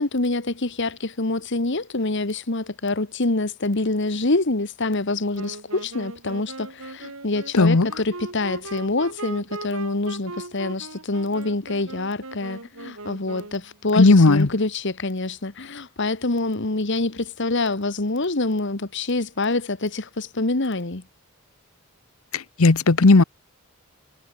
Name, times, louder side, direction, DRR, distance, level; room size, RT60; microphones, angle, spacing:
voice 1, 0.0-21.0, left 2 dB, 55° left, 1.5 m, -26 dB
Wind instrument woodwind instrument, 5.3-13.7, right 2 dB, 75° right, 3.5 m, -39 dB
voice 2, 7.5-7.9 14.0-14.5 22.3-23.2, left 3 dB, 70° left, 0.9 m, -15 dB
head